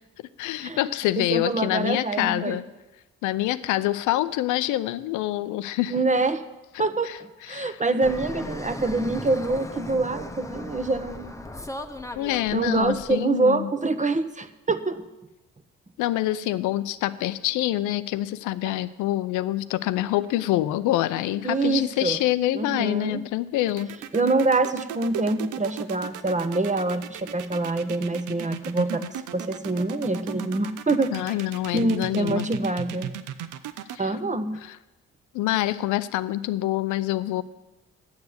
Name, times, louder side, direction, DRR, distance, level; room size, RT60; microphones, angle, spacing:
voice 1, 0.4-2.6 3.2-5.9 7.0-7.8 12.2-13.7 16.0-23.9 31.1-32.5 33.9-34.1 34.6-34.8 35.3-37.4, left 15 dB, 85° left, 14 dB, 0.6 m, -26 dB
voice 2, 1.2-2.6 5.9-6.4 6.8-7.1 7.5-11.4 12.5-15.0 18.7-18.8 21.4-22.2 22.5-23.2 24.1-29.0 29.3-31.2 31.7-33.1 34.0-34.6, right 3 dB, 25° right, 10 dB, 1.1 m, -25 dB
Fixed-wing aircraft airplane, 8.0-13.2, left 1 dB, 10° left, 1.0 m, -37 dB
sound 1, 23.7-34.0, right 10 dB, 80° right, 0.7 m, -36 dB
10.5 x 7.2 x 8.0 m, 1.0 s
supercardioid pair, 55°, 30 cm